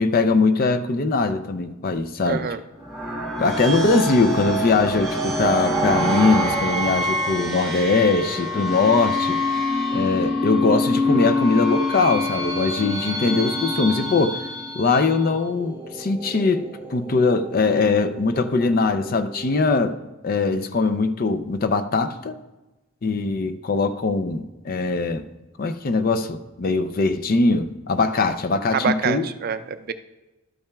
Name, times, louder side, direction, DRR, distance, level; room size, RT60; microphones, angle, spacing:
voice 1, 0.0-2.5 3.4-9.4 9.9-14.4 14.7-16.6 16.9-20.0 20.2-22.4 23.0-25.3 25.6-29.2, left 3 dB, 45° left, 10 dB, 0.4 m, -21 dB
voice 2, 2.3-2.6 28.7-29.9, right 6 dB, 45° right, 11 dB, 0.4 m, -26 dB
sound 1, 2.8-15.3, left 1 dB, 5° left, 1.4 m, -25 dB
sound 2, 14.2-19.6, right 1 dB, 20° right, 1.3 m, -41 dB
12.5 x 8.6 x 2.3 m, 1.1 s
head